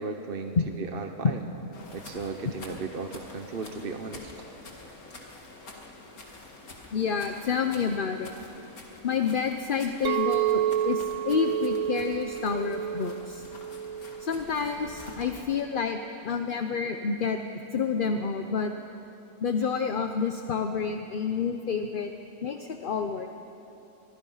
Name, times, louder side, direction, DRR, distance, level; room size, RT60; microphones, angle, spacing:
voice 1, 0.0-1.4 1.9-4.3, right 4 dB, 40° right, 5 dB, 1.1 m, -35 dB
sound 1, 1.7-15.5, left 2 dB, 75° left, 2.6 m, -47 dB
voice 2, 6.9-8.4 9.0-13.4 14.2-16.0 16.2-17.4 17.7-18.7 19.4-22.1 22.4-23.3, left 6 dB, 45° left, 6 dB, 0.8 m, -29 dB
Chink clink, 10.0-15.3, right 10 dB, 65° right, 1.1 m, -30 dB
24.5 x 23.0 x 5.7 m, 3.0 s
omnidirectional pair, 1.6 m